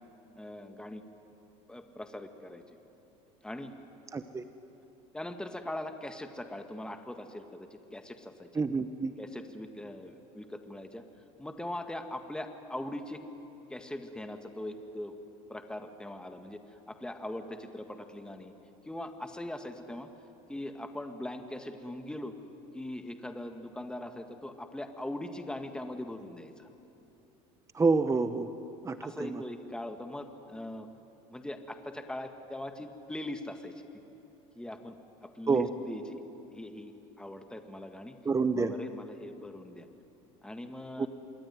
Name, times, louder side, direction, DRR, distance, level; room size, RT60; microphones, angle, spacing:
voice 1, 0.4-1.0 1.7-2.6 3.4-3.7 5.1-8.6 9.2-11.0 11.4-13.2 13.7-15.2 15.5-16.6 16.9-18.5 18.9-20.1 20.5-22.3 22.7-26.7 29.0-30.9 31.3-33.9 34.6-35.0 35.2-36.2 36.5-38.2 38.6-39.9 40.4-41.1, left 1 dB, 5° left, 6 dB, 2.0 m, -41 dB
voice 2, 4.1-4.4 8.5-9.1 27.7-28.5 28.8-29.4 35.5-35.7 38.2-38.7 41.0-41.1, right 4 dB, 20° right, 10 dB, 1.0 m, -28 dB
27.0 x 21.5 x 9.5 m, 2.9 s
supercardioid pair, 95°, 16 cm